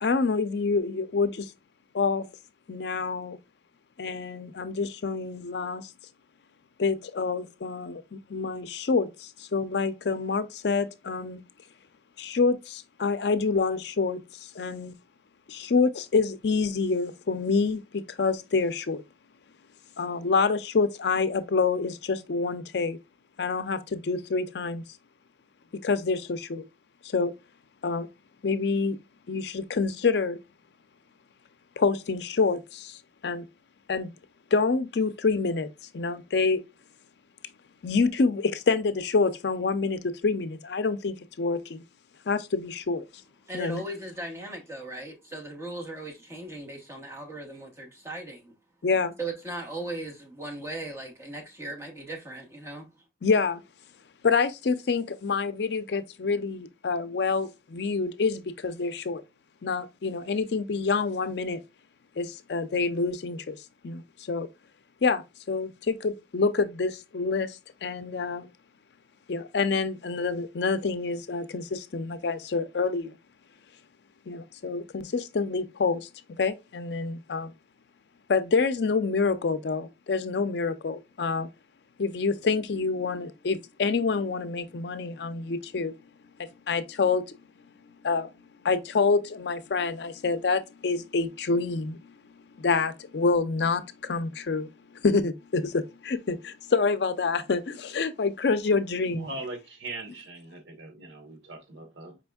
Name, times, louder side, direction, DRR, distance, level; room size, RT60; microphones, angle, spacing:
voice 1, 0.0-1.5 1.9-2.3 2.7-3.4 4.0-5.9 6.8-11.4 12.2-14.9 15.5-19.0 20.0-23.0 23.4-24.8 25.8-26.6 27.0-27.3 27.8-28.1 28.4-29.0 29.3-30.4 31.8-33.0 33.2-33.4 33.9-34.1 34.5-35.7 35.9-36.6 37.8-41.8 42.3-43.0 43.5-43.9 48.8-49.1 53.2-53.6 54.2-59.2 59.6-61.6 62.2-63.6 63.8-64.0 64.3-64.5 65.0-68.5 69.3-73.2 74.3-77.5 78.3-81.5 82.0-85.9 86.4-87.4 88.0-88.3 88.6-94.7 95.0-99.3, left 4 dB, 65° left, 0.5 m, -27 dB
voice 2, 43.5-48.5 49.2-52.9, right 2 dB, 15° right, 1.0 m, -38 dB
voice 3, 99.1-102.2, right 2 dB, 90° right, 1.0 m, -40 dB
5.0 x 3.4 x 2.2 m
head